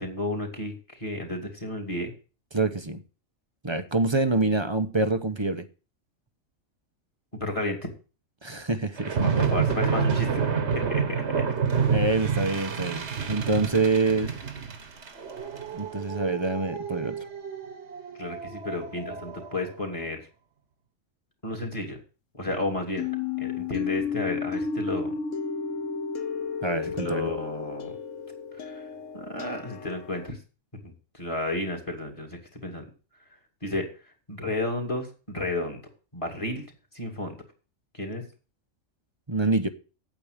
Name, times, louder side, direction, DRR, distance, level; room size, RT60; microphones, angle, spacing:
voice 1, 0.0-2.1 7.3-7.9 9.2-11.5 18.2-20.2 21.4-22.0 22.3-23.1 23.4-25.1 26.8-27.9 28.6-28.8 29.1-30.4 30.8-32.9 33.6-33.9 34.3-35.8 36.1-36.7 36.9-37.4 37.9-38.2, left 1 dB, 25° left, 4 dB, 2.6 m, -32 dB
voice 2, 2.5-3.0 3.6-5.6 8.4-9.3 11.9-14.3 15.7-17.2 26.6-27.3 39.3-39.7, right 3 dB, 25° right, 9 dB, 0.8 m, -26 dB
sound 1, 9.0-19.6, right 6 dB, 60° right, 1.5 m, -29 dB
sound 2, 23.0-30.3, left 6 dB, 75° left, 1.3 m, -32 dB
8.9 x 8.5 x 6.5 m, 0.36 s
omnidirectional pair, 1.4 m